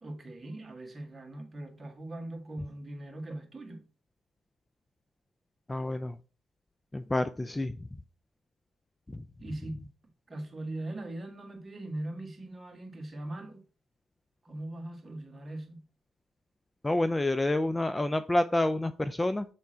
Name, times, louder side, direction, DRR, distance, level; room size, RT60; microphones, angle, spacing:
voice 1, 0.0-3.8 9.4-9.9 10.3-13.6 14.4-15.8, right 1 dB, 25° right, 1.5 m, -40 dB
voice 2, 5.7-6.2 6.9-7.8 9.1-9.2 16.8-19.5, left 1 dB, 15° left, 0.3 m, -28 dB
7.5 x 3.5 x 4.3 m
cardioid pair, 90°, 0 cm